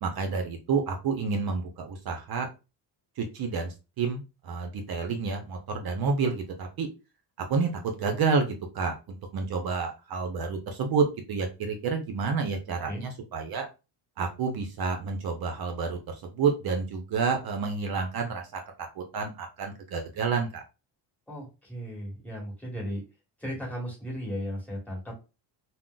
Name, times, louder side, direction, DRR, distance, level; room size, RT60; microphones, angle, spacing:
voice 1, 0.0-2.5 3.2-6.9 7.5-13.7 14.2-18.6 19.0-20.6, right 5 dB, 50° right, 4 dB, 0.6 m, -29 dB
voice 2, 21.3-23.0 23.4-25.1, equal, 5° left, -4 dB, 1.4 m, -35 dB
2.4 x 2.1 x 3.7 m, 0.29 s
cardioid pair, 135°, 46 cm